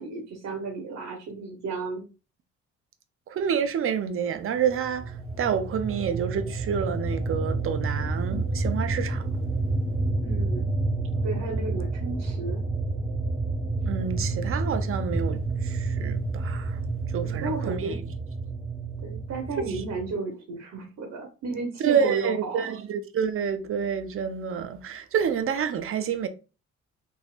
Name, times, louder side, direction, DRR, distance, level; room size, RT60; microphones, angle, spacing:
voice 1, 0.0-2.0 10.2-10.7 11.2-12.6 17.2-18.0 19.0-22.7, right 3 dB, 70° right, 1.0 m, -33 dB
voice 2, 3.3-9.5 13.8-16.8 17.1-17.9 21.8-26.3, right 7 dB, 45° right, 0.5 m, -28 dB
sound 1, 4.7-20.1, right 3 dB, 15° right, 1.0 m, -29 dB
3.4 x 2.6 x 2.4 m
cardioid pair, 90°, 30 cm